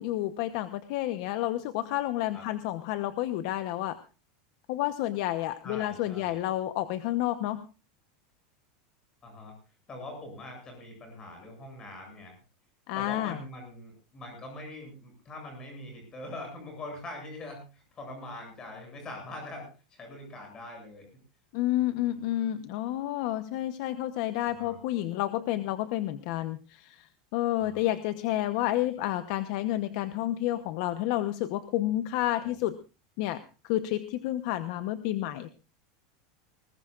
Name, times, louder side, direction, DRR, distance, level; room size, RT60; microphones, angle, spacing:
voice 1, 0.0-4.0 4.7-7.6 12.9-13.4 21.5-32.8 33.2-35.5, left 14 dB, 45° left, 11 dB, 1.0 m, -30 dB
voice 2, 5.6-6.5 9.2-9.5 9.9-12.3 12.9-21.0 21.8-22.3 24.6-24.8 27.6-27.9 32.4-32.5, left 1 dB, 15° left, 3 dB, 7.9 m, -43 dB
21.0 x 19.0 x 2.5 m, 0.33 s
supercardioid pair, 175°, 4 cm